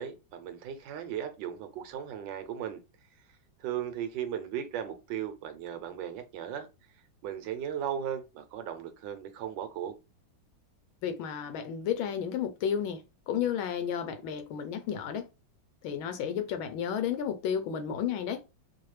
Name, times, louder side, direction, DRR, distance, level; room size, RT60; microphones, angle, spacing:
voice 1, 0.0-2.8 3.6-6.7 7.2-10.0, right 9 dB, 75° right, 1.2 m, -36 dB
voice 2, 11.0-15.3 15.8-18.4, left 8 dB, 90° left, 1.5 m, -32 dB
4.7 x 2.3 x 3.2 m
omnidirectional pair, 2.1 m